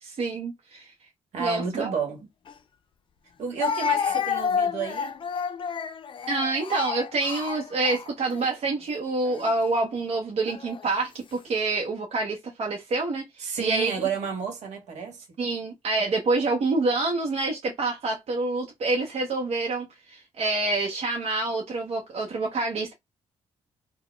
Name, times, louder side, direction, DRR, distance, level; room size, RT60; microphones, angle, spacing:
voice 1, 0.0-0.9 1.4-1.9 4.0-4.1 6.3-13.9 15.4-22.9, right 3 dB, 60° right, 0.8 m, -27 dB
voice 2, 1.3-2.2 3.4-5.2 13.4-15.2, right 6 dB, 75° right, 1.2 m, -31 dB
Speech, 2.5-2.6 3.6-8.5 9.3-9.5 10.5-11.0, left 7 dB, 45° left, 0.4 m, -30 dB
4.0 x 2.2 x 2.2 m
cardioid pair, 75°, 12 cm